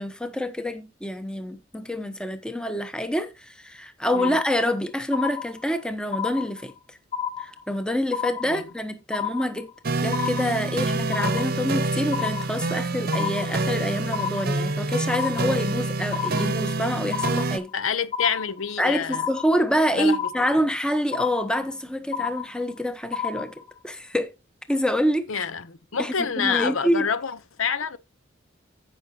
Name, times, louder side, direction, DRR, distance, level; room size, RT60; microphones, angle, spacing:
voice 1, 0.0-7.0 7.4-9.7 10.0-17.7 18.8-23.5 23.8-24.3 24.7-25.5 26.0-27.1, equal, 5° left, 1.0 m, -26 dB
sound 1, 4.1-4.8 5.1-5.8 6.1-6.8 7.1-7.8 8.1-8.8 9.1-9.8 10.1-10.8 11.1-11.8 12.1-12.8 13.1-13.8 14.1-14.8 15.1-15.8 16.1-16.8 17.1-17.8 18.1-18.8 19.1-19.8 20.1-20.8 21.1-21.8 22.1-22.8 23.1-23.8, left 8 dB, 30° left, 3.5 m, -31 dB
sound 2, 9.8-17.6, right 2 dB, 45° right, 0.9 m, -27 dB
voice 2, 17.7-19.2 20.0-20.2 25.3-28.0, left 6 dB, 75° left, 0.8 m, -27 dB
15.0 x 5.8 x 2.9 m
head